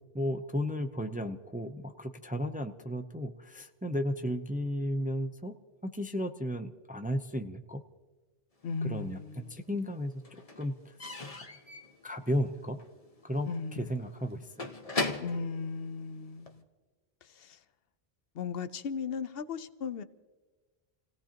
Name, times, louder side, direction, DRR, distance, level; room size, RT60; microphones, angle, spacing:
voice 1, 0.1-5.5 5.8-7.8 8.8-9.2 9.5-10.1 10.6-11.0 11.4-11.5 12.0-12.8 13.2-14.7, equal, 10° right, 0.5 m, -34 dB
voice 2, 8.6-9.6 13.5-13.9 15.2-16.6 17.2-17.6 18.3-20.0, left 5 dB, 70° left, 0.9 m, -37 dB
Slam / Squeak / Wood, 8.7-9.6 9.8-16.6, left 3 dB, 35° left, 1.2 m, -39 dB
29.0 x 17.0 x 2.9 m
omnidirectional pair, 1.0 m